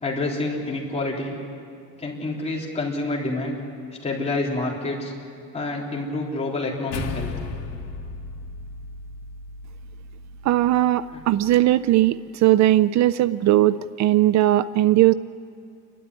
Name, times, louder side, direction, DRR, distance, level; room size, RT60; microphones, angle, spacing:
voice 1, 0.0-1.4 2.0-3.6 4.0-5.1 5.5-7.3 11.1-11.2, left 2 dB, 20° left, -3 dB, 3.8 m, -28 dB
sound 1, 6.9-11.5, left 3 dB, 80° left, 2.2 m, -36 dB
voice 2, 10.4-15.1, right 14 dB, 65° right, 16 dB, 0.5 m, -19 dB
29.0 x 12.5 x 9.8 m, 2.3 s
cardioid pair, 150°, 30 cm